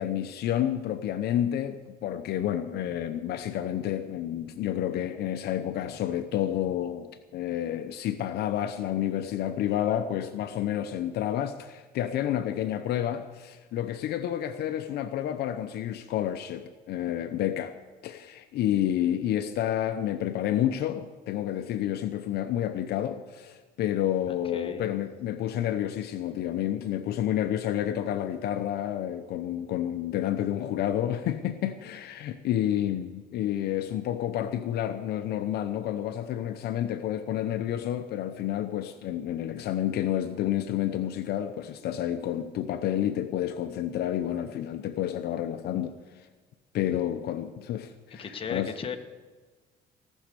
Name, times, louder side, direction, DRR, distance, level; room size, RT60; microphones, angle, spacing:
voice 1, 0.0-17.7 18.0-45.9 46.7-48.7, left 11 dB, 70° left, 0.8 m, -30 dB
voice 2, 24.3-24.9 48.2-49.0, left 6 dB, 30° left, 1.3 m, -36 dB
17.0 x 6.4 x 8.3 m
cardioid pair, 110°, 17 cm